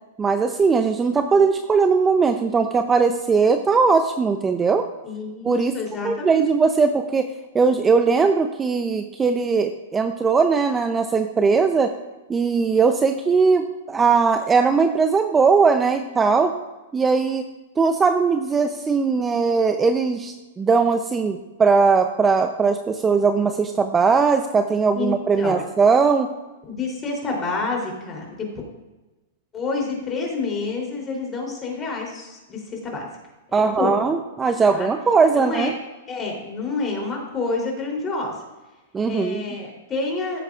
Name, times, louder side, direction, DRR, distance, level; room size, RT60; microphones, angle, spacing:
voice 1, 0.2-4.9 5.4-5.7 6.0-7.3 7.5-11.9 12.3-16.5 16.9-17.5 17.8-26.3 33.5-35.7 38.9-39.4, right 5 dB, 15° right, 7 dB, 0.6 m, -19 dB
voice 2, 5.0-6.4 24.9-25.5 26.7-28.5 29.5-33.1 33.5-33.9 34.7-34.9 35.3-35.7 36.1-38.3 39.0-40.4, left 3 dB, 25° left, 0 dB, 3.3 m, -28 dB
15.5 x 8.0 x 2.5 m, 1.1 s
hypercardioid pair, 125°, 0 cm